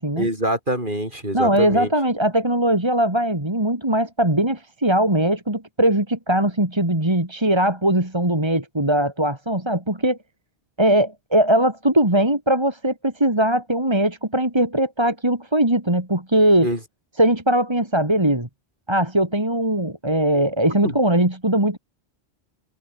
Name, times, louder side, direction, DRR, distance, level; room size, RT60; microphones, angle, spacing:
voice 1, 0.2-1.9 16.6-16.8 20.8-21.0, right 1 dB, 50° right, 8.4 m, -25 dB
voice 2, 1.3-10.2 10.8-16.7 17.2-18.5 18.9-21.8, right 1 dB, 25° right, 3.3 m, -20 dB
omnidirectional pair, 1.1 m